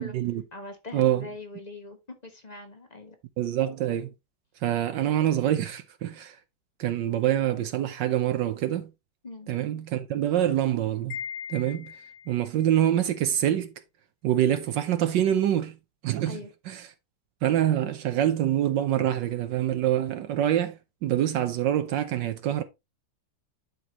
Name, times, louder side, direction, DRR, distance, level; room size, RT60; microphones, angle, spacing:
voice 1, 0.0-0.4 0.9-1.3 3.4-4.1 4.6-6.4 6.8-8.9 9.5-11.2 11.5-11.9 12.3-13.7 14.2-15.8 16.0-16.4 16.7-16.9 17.4-22.6, right 11 dB, 75° right, 1.4 m, -25 dB
voice 2, 0.5-3.2 9.2-9.6 16.2-16.5, left 2 dB, 25° left, 1.0 m, -42 dB
Wind chime, 11.1-12.5, left 8 dB, 70° left, 1.0 m, -39 dB
11.0 x 4.5 x 3.0 m
omnidirectional pair, 2.1 m